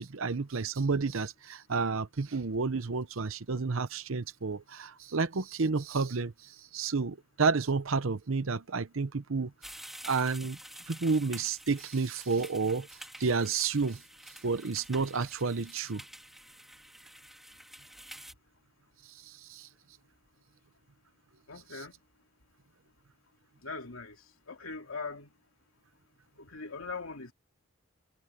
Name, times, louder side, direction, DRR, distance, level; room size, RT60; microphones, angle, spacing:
voice 1, 0.0-9.5 10.1-10.6 10.9-12.9 13.2-14.0 14.4-16.0 19.2-19.7, right 4 dB, 75° right, 0.8 m, -30 dB
sound 1, 9.6-18.3, equal, ahead, 2.3 m, -49 dB
voice 2, 21.5-21.9 23.6-24.2 24.5-25.3 26.4-27.3, left 4 dB, 85° left, 2.7 m, -40 dB
head